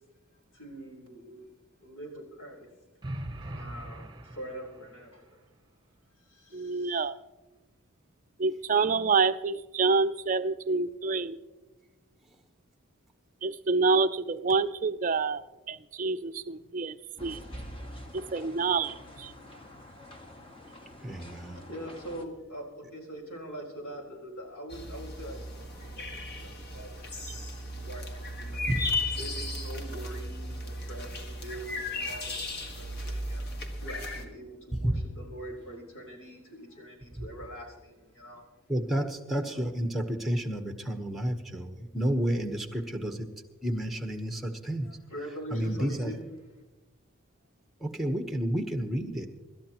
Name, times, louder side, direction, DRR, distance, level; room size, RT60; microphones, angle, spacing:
voice 1, 0.5-1.5 1.8-2.7 3.4-5.4 6.2-7.1 21.5-28.7 29.1-33.5 33.8-38.4 39.5-39.7 44.8-46.2, right 1 dB, 75° left, -1 dB, 4.1 m, -44 dB
sound 1, 3.0-5.1, right 1 dB, 20° right, 1.0 m, -40 dB
voice 2, 6.5-7.1 8.4-11.4 13.4-15.4 15.7-17.0 17.2-17.4 18.1-19.3, right 4 dB, 35° right, 11 dB, 0.5 m, -27 dB
sound 2, 17.2-22.3, equal, 25° left, 1.5 m, -46 dB
voice 3, 21.0-21.6 28.7-28.9 34.8-35.0 38.7-43.3 43.6-44.9 45.5-46.1 47.8-49.3, right 1 dB, ahead, 5 dB, 1.1 m, -30 dB
sound 3, 24.7-34.2, left 2 dB, 45° left, 1.6 m, -35 dB
26.0 x 12.5 x 3.0 m, 1.2 s
head